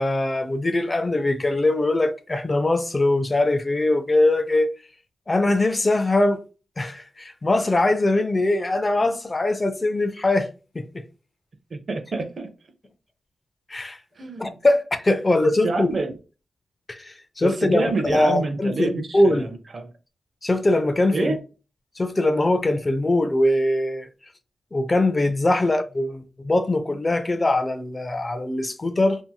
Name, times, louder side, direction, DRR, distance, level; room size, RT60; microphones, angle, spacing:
voice 1, 0.0-4.7 5.3-6.4 6.8-10.5 10.7-11.0 13.7-14.0 14.4-15.9 16.9-19.5 20.4-21.4 22.0-24.1 24.7-29.2, left 2 dB, 30° left, 0.4 m, -22 dB
voice 2, 11.7-12.5 14.2-14.6 15.4-16.1 17.4-19.9 21.1-21.4, right 3 dB, 50° right, 0.6 m, -27 dB
2.7 x 2.6 x 2.2 m
wide cardioid pair, 100°, 0 cm